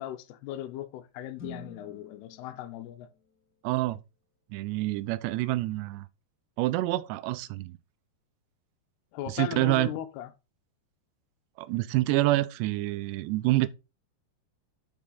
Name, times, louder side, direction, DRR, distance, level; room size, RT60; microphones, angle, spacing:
voice 1, 0.0-3.1 9.1-10.3, left 12 dB, 75° left, 2.7 m, -38 dB
sound 1, 1.4-3.8, left 2 dB, 45° left, 1.3 m, -49 dB
voice 2, 3.6-4.0 4.5-6.1 6.6-7.8 9.3-9.9 11.6-13.7, right 17 dB, 90° right, 2.8 m, -27 dB
8.7 x 6.4 x 4.0 m
omnidirectional pair, 4.9 m